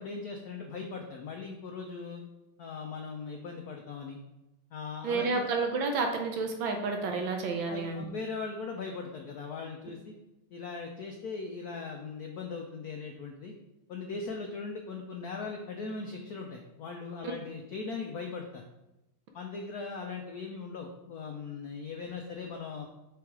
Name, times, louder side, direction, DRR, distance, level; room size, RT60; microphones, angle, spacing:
voice 1, 0.0-2.2 2.6-4.2 4.7-5.5 7.4-10.1 10.5-13.5 13.9-18.6 19.3-22.9, left 4 dB, 85° left, 2 dB, 0.8 m, -39 dB
voice 2, 5.0-8.0, right 4 dB, 70° right, 3 dB, 1.5 m, -30 dB
6.3 x 3.5 x 4.6 m, 0.95 s
omnidirectional pair, 2.4 m